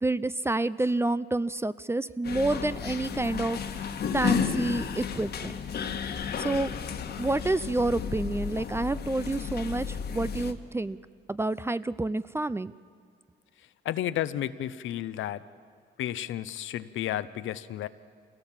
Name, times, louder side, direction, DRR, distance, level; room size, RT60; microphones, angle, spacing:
voice 1, 0.0-3.9 4.1-5.5 6.4-6.7 7.2-11.0 11.3-12.7, right 2 dB, 10° right, 16 dB, 0.4 m, -29 dB
sound 1, 2.2-10.5, left 6 dB, 55° left, 1.5 m, -33 dB
voice 2, 13.8-15.4 16.0-17.9, left 12 dB, 75° left, 14 dB, 0.8 m, -32 dB
25.5 x 17.5 x 7.4 m, 2.3 s
cardioid pair, 90°, 20 cm